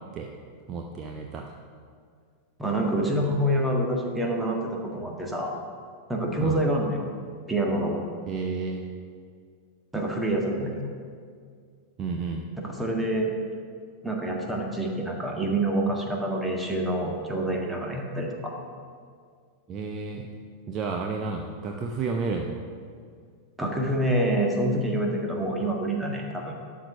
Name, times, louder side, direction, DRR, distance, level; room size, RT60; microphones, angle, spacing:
voice 1, 0.7-1.5 6.4-6.6 8.3-8.8 12.0-12.5 19.7-20.3 20.7-22.6, right 4 dB, 30° right, 1 dB, 0.8 m, -31 dB
voice 2, 2.6-5.5 6.1-7.0 7.5-7.9 9.9-10.8 12.6-13.3 14.0-18.5 23.6-26.5, right 1 dB, 5° right, 0 dB, 1.7 m, -27 dB
11.5 x 4.7 x 6.7 m, 2.1 s
figure-of-eight pair, 90°, 0 cm